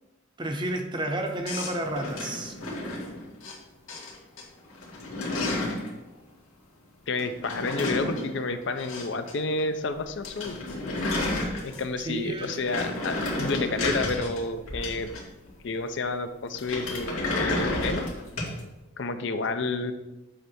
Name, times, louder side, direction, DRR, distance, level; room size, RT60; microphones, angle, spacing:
voice 1, 0.4-2.5 12.1-12.6, right 1 dB, 20° right, 4 dB, 0.7 m, -31 dB
sound 1, 1.5-3.6 3.9-4.4 4.7-5.9 7.2-9.3 9.6-9.7 10.0-10.1 10.2-12.0 12.4-15.5 16.6-18.6, left 2 dB, 85° left, 2.0 m, -31 dB
voice 2, 7.1-10.6 11.6-15.1 15.6-18.1 19.0-19.9, left 3 dB, 55° left, 9 dB, 0.5 m, -30 dB
7.9 x 3.3 x 6.1 m, 1.0 s
head